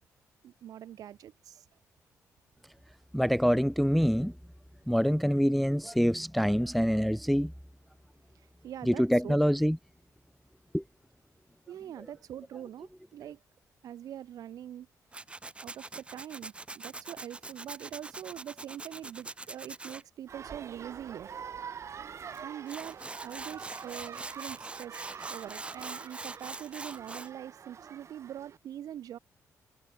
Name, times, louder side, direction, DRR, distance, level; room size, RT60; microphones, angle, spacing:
voice 1, 0.4-1.7 8.3-9.4 11.7-13.4 13.8-14.9 15.6-21.3 22.4-25.0 25.3-29.2, right 11 dB, 75° right, 2.6 m, -43 dB
voice 2, 3.1-4.3 4.9-7.5 8.9-9.8 10.7-10.8, equal, ahead, 0.6 m, -25 dB
Tools, 15.1-20.0 22.3-22.4 22.7-27.3, right 2 dB, 15° right, 1.4 m, -43 dB
sound 1, 20.3-28.6, right 7 dB, 50° right, 3.7 m, -45 dB
cardioid pair, 115°, 6 cm